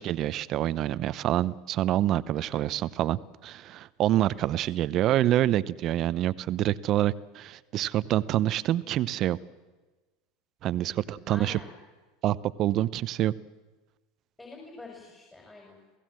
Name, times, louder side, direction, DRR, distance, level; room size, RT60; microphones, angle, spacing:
voice 1, 0.0-9.4 10.6-11.6 12.2-13.3, right 13 dB, 50° right, 17 dB, 0.8 m, -27 dB
voice 2, 2.3-2.7 4.2-4.5 10.8-11.7 14.4-15.8, left 3 dB, 15° left, 0 dB, 5.6 m, -47 dB
28.0 x 17.0 x 7.7 m, 1.2 s
hypercardioid pair, 85°, 0 cm